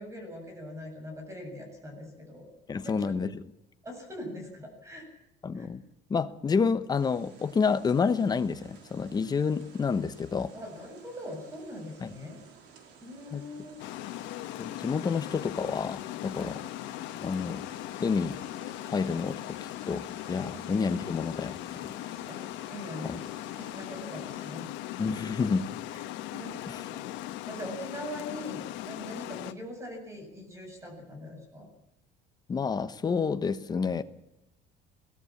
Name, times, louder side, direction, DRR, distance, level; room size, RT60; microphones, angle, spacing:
voice 1, 0.0-2.5 2.8-3.0 3.8-5.1 5.5-5.7 10.5-12.4 13.0-13.8 16.3-16.6 20.5-20.7 22.3-25.4 25.9-27.0 27.5-31.7, left 1 dB, 15° right, 4 dB, 7.6 m, -42 dB
voice 2, 2.7-3.4 5.4-5.8 6.1-10.5 12.0-12.1 13.3-13.4 14.6-16.6 17.2-17.6 18.0-18.4 18.8-20.0 20.3-21.9 23.0-23.2 25.0-25.7 26.7-26.8 32.5-34.0, left 5 dB, 20° left, 11 dB, 1.1 m, -29 dB
sound 1, 6.9-24.5, right 6 dB, 70° right, 4.6 m, -55 dB
Water, 13.8-29.5, left 15 dB, 85° left, 1.4 m, -39 dB
22.5 x 17.5 x 7.3 m, 0.87 s
cardioid pair, 160°, 19 cm